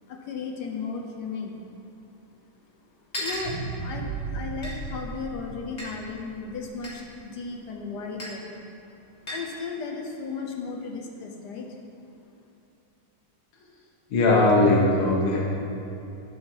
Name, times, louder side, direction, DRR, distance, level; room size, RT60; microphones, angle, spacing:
voice 1, 0.1-1.6 3.2-8.6 9.2-11.8, left 4 dB, 60° left, 1 dB, 1.4 m, -35 dB
sound 1, 2.4-2.5 3.1-3.5 4.6-4.7 5.8-5.9 6.8-7.0 8.2-8.4 9.3-9.5, equal, 30° left, 2.2 m, -34 dB
sound 2, 3.3-7.6 8.1-8.2, right 4 dB, 65° right, 1.4 m, -36 dB
voice 2, 14.1-15.4, left 2 dB, 90° left, -3 dB, 2.1 m, -19 dB
11.0 x 7.2 x 5.6 m, 2.9 s
omnidirectional pair, 2.3 m